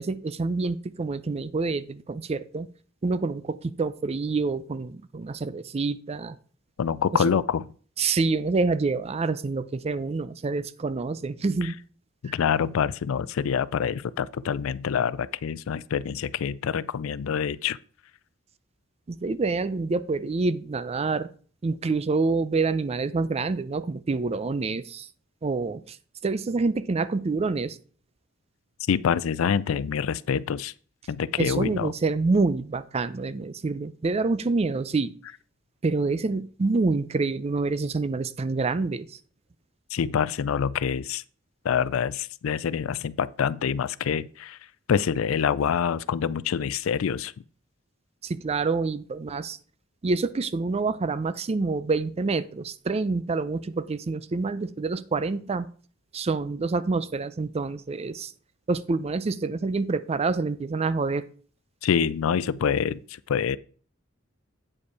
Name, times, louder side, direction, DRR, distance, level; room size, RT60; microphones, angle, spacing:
voice 1, 0.0-2.7 3.0-6.4 8.0-11.8 12.2-12.3 19.1-21.3 21.6-25.1 25.4-26.0 26.2-27.8 31.4-35.1 35.8-39.1 48.2-49.6 50.0-55.7 56.1-58.3 58.7-61.2, right 3 dB, 30° right, 0.4 m, -27 dB
voice 2, 6.8-7.6 11.6-11.7 12.2-17.8 28.9-30.7 31.1-31.9 39.9-41.2 41.6-44.6 44.9-47.3 61.8-63.6, left 7 dB, 85° left, 0.4 m, -26 dB
8.5 x 5.1 x 4.7 m
head